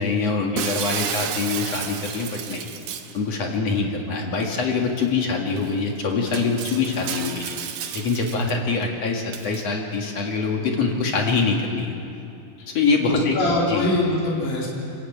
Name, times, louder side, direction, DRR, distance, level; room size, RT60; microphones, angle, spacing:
voice 1, 0.0-2.7 3.1-7.6 7.9-11.9 12.7-13.4 13.7-13.9, left 4 dB, 50° left, 1 dB, 2.1 m, -24 dB
Shatter, 0.6-3.2 5.0-5.1 5.6-5.7 6.3-8.5 9.3-9.6, right 8 dB, 90° right, 1.7 m, -31 dB
voice 2, 12.8-14.7, left 1 dB, 85° left, -3 dB, 5.9 m, -24 dB
26.5 x 14.0 x 9.1 m, 2.7 s
omnidirectional pair, 5.2 m